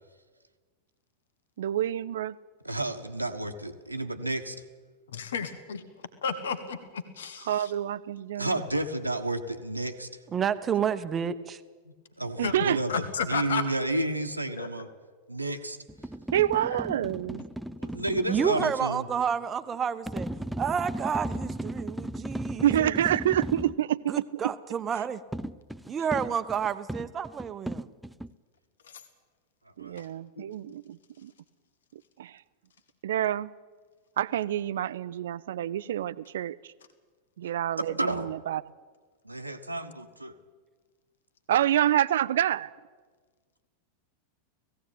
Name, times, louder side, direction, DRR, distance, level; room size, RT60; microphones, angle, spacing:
voice 1, 1.6-2.4 7.5-8.6 12.4-12.8 16.3-17.4 22.6-24.2 29.8-31.3 32.2-32.4 33.0-33.5 34.2-36.7 37.4-38.6 41.5-42.7, right 11 dB, 60° right, 17 dB, 0.6 m, -27 dB
voice 2, 2.6-4.5 8.4-10.1 11.8-14.9 15.3-15.8 17.8-19.1 29.8-30.0 38.0-38.3 39.2-40.3, right 1 dB, 85° right, 3 dB, 1.4 m, -31 dB
voice 3, 5.1-5.8 6.2-7.7 12.4-12.5 12.9-13.6 14.6-14.7 16.7-16.8 28.8-29.0 30.0-30.1 30.4-30.5, left 6 dB, 65° left, 10 dB, 1.7 m, -32 dB
voice 4, 10.3-11.6 18.3-20.3 20.6-22.9 24.1-25.2 25.8-27.9, right 7 dB, 25° right, 12 dB, 1.0 m, -30 dB
sound 1, 15.9-18.8 20.1-23.8 25.3-28.3, right 1 dB, ahead, 0.5 m, -36 dB
18.0 x 16.0 x 9.0 m, 1.4 s
figure-of-eight pair, 90°, 0 cm